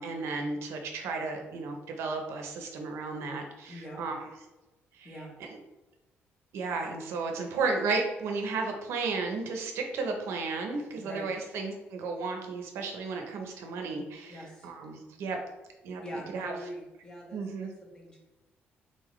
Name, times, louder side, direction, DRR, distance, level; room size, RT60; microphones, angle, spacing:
voice 1, 0.0-4.2 5.0-5.1 6.5-15.4 15.8-16.0 16.3-16.6 17.3-17.7, right 4 dB, 80° right, 3 dB, 0.7 m, -33 dB
voice 2, 3.7-4.0 5.0-5.3 10.9-11.3 14.3-14.7 16.0-18.2, equal, 15° left, -2 dB, 1.1 m, -43 dB
3.9 x 3.9 x 3.1 m, 1.1 s
cardioid pair, 170°, 4 cm